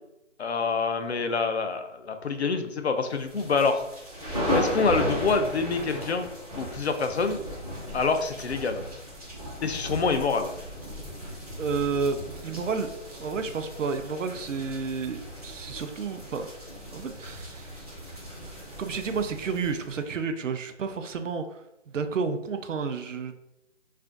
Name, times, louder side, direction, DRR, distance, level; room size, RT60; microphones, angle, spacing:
voice 1, 0.4-3.8 4.5-6.3 6.6-7.4 7.9-8.8 9.6-10.5, left 4 dB, 60° left, 6 dB, 0.5 m, -26 dB
sound 1, 3.2-20.1, equal, 30° right, 0.8 m, -36 dB
voice 2, 11.6-12.9 13.2-16.5 16.9-17.7 18.8-21.6 21.9-23.3, right 5 dB, 85° right, 8 dB, 0.5 m, -31 dB
2.4 x 2.2 x 3.7 m, 0.85 s
figure-of-eight pair, 175°, 37 cm